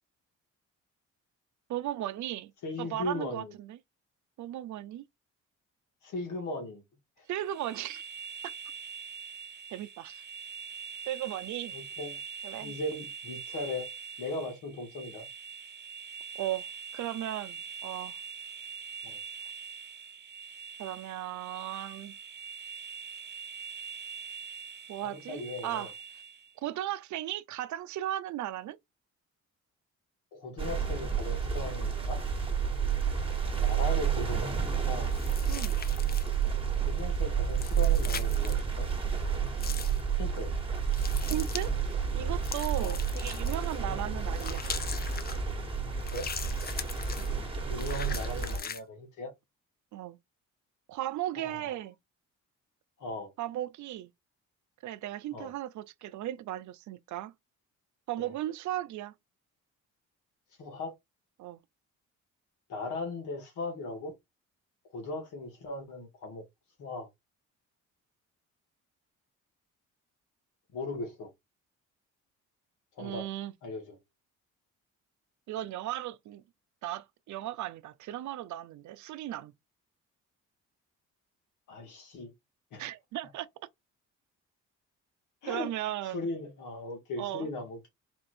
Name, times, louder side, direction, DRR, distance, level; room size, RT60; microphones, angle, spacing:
voice 1, 1.7-2.5 2.8-3.8 4.4-5.0 7.3-8.0 9.7-10.2 11.1-11.7 12.4-12.7 16.4-16.7 16.9-18.1 20.8-22.1 24.9-25.9 26.6-28.8 32.8-33.0 35.5-35.8 41.3-44.7 47.2-47.3 49.9-50.2 50.9-52.0 53.4-54.1 54.8-57.3 58.1-59.1 61.4-61.6 73.0-73.5 75.5-76.4 76.8-79.5 82.8-83.5 85.5-86.2 87.2-87.5, right 13 dB, 70° right, 0.5 m, -36 dB
voice 2, 2.6-3.5 6.0-6.8 11.7-12.2 12.6-13.9 14.2-15.3 19.0-19.2 25.0-25.9 30.3-32.2 33.4-34.6 34.8-35.1 36.9-38.9 40.2-40.5 42.8-43.0 46.1-46.3 47.7-49.3 51.4-51.7 53.0-53.3 55.3-55.5 58.2-58.3 60.6-60.9 62.7-64.1 64.9-66.4 66.8-67.1 70.7-71.3 73.0-73.3 73.6-74.0 81.7-82.3 82.7-82.8 85.4-85.7 86.1-87.9, left 2 dB, 80° left, 1.8 m, -38 dB
sound 1, 7.3-26.5, right 6 dB, 35° right, 1.0 m, -43 dB
sound 2, 30.6-48.6, right 7 dB, 20° right, 1.3 m, -30 dB
sound 3, 35.1-36.4 37.5-38.6 39.6-40.0 40.9-41.7 42.4-43.8 44.3-45.4 46.0-47.3 47.8-48.8, left 6 dB, 30° left, 0.6 m, -40 dB
4.3 x 2.5 x 4.3 m
cardioid pair, 90°, 30 cm